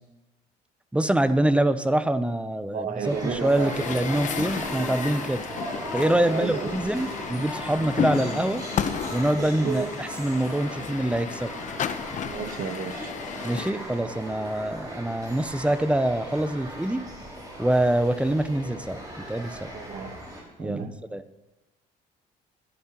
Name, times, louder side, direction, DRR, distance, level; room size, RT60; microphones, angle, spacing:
voice 1, 0.9-5.4 5.9-8.6 9.1-11.5 13.4-17.0 17.6-19.0 19.3-19.7 20.6-20.9 21.1-21.2, right 1 dB, 5° right, 11 dB, 0.6 m, -25 dB
voice 2, 2.7-3.8 6.2-6.8 9.4-9.9 12.2-13.1 19.7-20.1 20.6-20.9, right 6 dB, 55° right, 7 dB, 1.3 m, -32 dB
sound 1, 3.0-20.4, right 1 dB, 25° right, 4.8 m, -38 dB
Truck, 3.5-13.7, left 8 dB, 45° left, 0.8 m, -33 dB
21.0 x 10.5 x 3.0 m, 1.1 s
cardioid pair, 110°, 17 cm